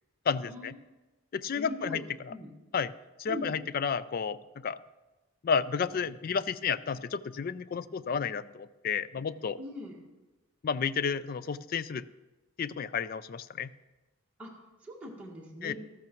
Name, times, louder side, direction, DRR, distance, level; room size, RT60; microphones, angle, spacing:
voice 1, 0.3-0.7 1.3-2.3 2.7-2.9 3.2-4.8 5.4-9.6 10.6-12.1 12.6-13.7 15.6-15.7, left 6 dB, 45° left, 16 dB, 0.3 m, -31 dB
voice 2, 1.6-2.0 2.3-2.5 3.3-3.5 9.6-10.0 14.4-14.5 14.8-15.7, left 1 dB, 5° right, -5 dB, 1.7 m, -40 dB
13.5 x 13.5 x 3.0 m, 1.1 s
head